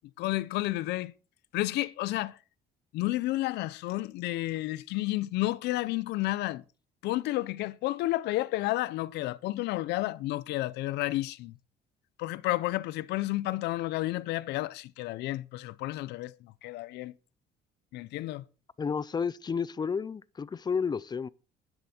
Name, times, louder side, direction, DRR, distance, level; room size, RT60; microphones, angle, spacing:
voice 1, 0.2-1.1 1.5-2.4 2.9-6.6 7.0-11.6 12.2-17.1 17.9-18.4, left 17 dB, 85° left, 0.8 m, -31 dB
voice 2, 18.8-21.3, left 6 dB, 25° left, 0.6 m, -31 dB
12.0 x 10.5 x 4.5 m
cardioid pair, 110°, 17 cm